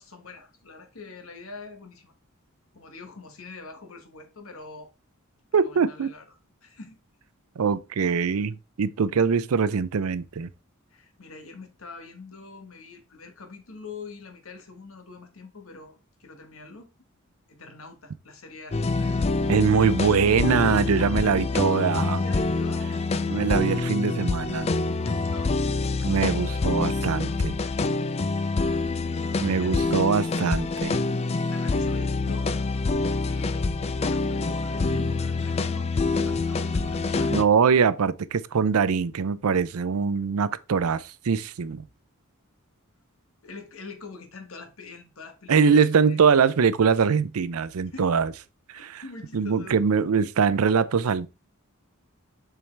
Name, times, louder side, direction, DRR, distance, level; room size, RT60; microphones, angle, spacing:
voice 1, 0.0-2.1 2.7-4.9 5.5-7.0 10.9-16.9 17.5-19.3 21.0-21.6 22.0-22.9 25.0-25.5 29.0-29.9 31.5-32.5 33.2-37.4 43.4-46.2 47.9-48.1 48.7-49.8, left 3 dB, 70° left, 1.4 m, -44 dB
voice 2, 5.5-6.1 7.6-10.5 19.5-22.2 23.3-24.7 26.0-27.6 29.4-31.0 37.3-41.8 45.5-48.3 48.7-49.0 49.3-51.3, right 6 dB, 85° right, 0.5 m, -23 dB
sound 1, 18.7-37.4, left 3 dB, 30° left, 0.4 m, -26 dB
7.1 x 4.6 x 3.3 m
head